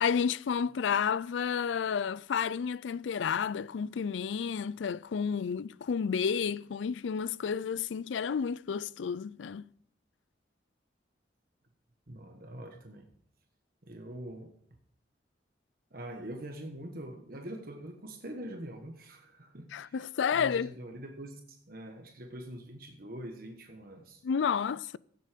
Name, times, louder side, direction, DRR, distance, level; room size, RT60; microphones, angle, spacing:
voice 1, 0.0-9.6 19.7-20.7 24.2-25.0, left 6 dB, 85° left, 0.4 m, -31 dB
voice 2, 12.1-13.1 13.9-14.5 15.9-20.0 20.3-24.2, right 1 dB, 50° right, 1.3 m, -44 dB
16.5 x 7.8 x 5.1 m
head